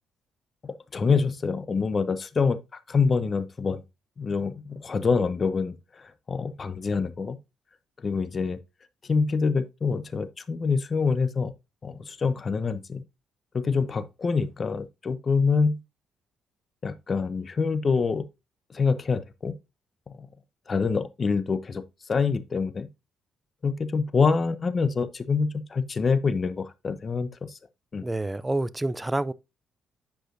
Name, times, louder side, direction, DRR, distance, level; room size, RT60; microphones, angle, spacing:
voice 1, 0.6-2.6 2.9-3.8 4.2-7.4 8.0-8.6 9.0-11.5 11.8-13.0 13.5-15.8 16.8-18.2 18.7-19.5 20.1-20.3 20.7-22.9 23.6-27.6 27.9-28.0, left 5 dB, 40° left, 0.7 m, -26 dB
voice 2, 28.0-29.3, right 2 dB, 15° right, 0.4 m, -28 dB
9.1 x 4.9 x 2.5 m
cardioid pair, 90°, 0 cm